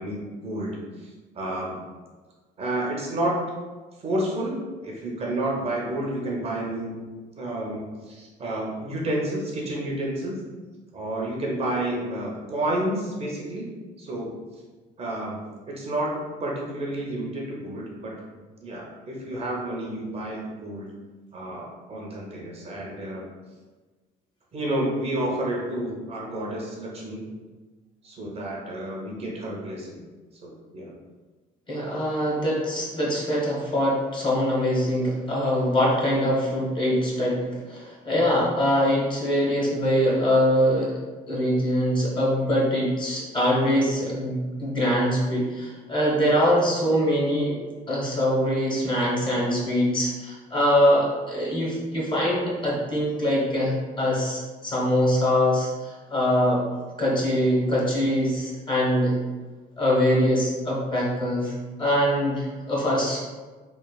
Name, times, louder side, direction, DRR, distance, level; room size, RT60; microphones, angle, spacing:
voice 1, 0.0-1.8 2.6-3.5 4.0-7.1 7.4-10.4 10.9-13.7 14.0-14.3 15.0-18.1 18.6-20.9 21.3-23.2 24.5-27.3 28.0-30.0 30.4-30.9, right 1 dB, 40° right, -3 dB, 0.5 m, -30 dB
voice 2, 31.7-40.9 41.3-47.5 47.9-56.6 57.0-59.2 59.8-61.5 61.8-63.2, equal, 30° left, -4 dB, 0.9 m, -23 dB
3.0 x 2.0 x 2.2 m, 1.3 s
cardioid pair, 110°, 17 cm